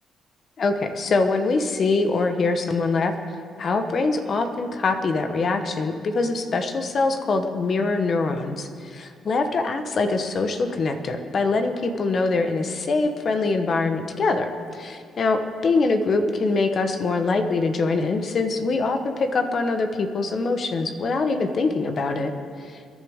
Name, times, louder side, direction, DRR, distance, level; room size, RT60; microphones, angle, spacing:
voice 1, 0.6-3.2 3.6-22.3 22.7-22.8, left 3 dB, 50° left, 6 dB, 1.1 m, -23 dB
24.5 x 11.0 x 3.6 m, 2.2 s
cardioid pair, 90°, 0 cm